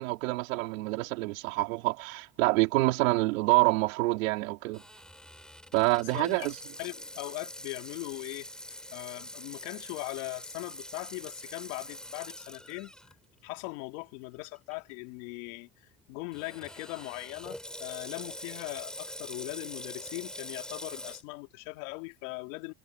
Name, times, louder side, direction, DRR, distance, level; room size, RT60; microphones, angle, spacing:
voice 1, 0.0-4.8 5.7-6.6, right 22 dB, 90° right, 4.9 m, -27 dB
Water tap faucet / Sink (filling or washing), 4.7-13.1 13.6-13.7 14.5-14.7 16.3-21.2, equal, ahead, 7.1 m, -44 dB
voice 2, 6.1-6.5 6.8-8.5 8.9-12.9 13.4-15.7 16.1-22.7, left 25 dB, 80° left, 3.3 m, -40 dB
supercardioid pair, 135°, 39 cm